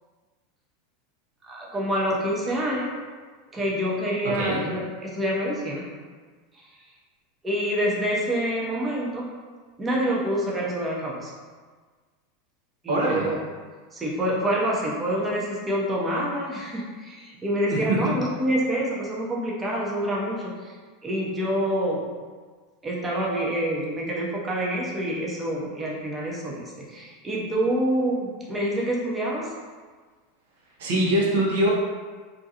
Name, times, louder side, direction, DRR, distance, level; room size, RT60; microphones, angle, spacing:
voice 1, 1.4-2.9 3.5-5.9 6.5-6.7 7.4-9.3 9.8-11.3 12.8-13.4 13.9-20.7 21.0-22.1 22.8-29.5, equal, 20° right, -4 dB, 0.6 m, -27 dB
voice 2, 12.9-13.3 17.7-18.2 30.8-31.7, right 1 dB, 70° right, -4 dB, 0.7 m, -23 dB
2.5 x 2.2 x 2.7 m, 1.5 s
hypercardioid pair, 95°, 0 cm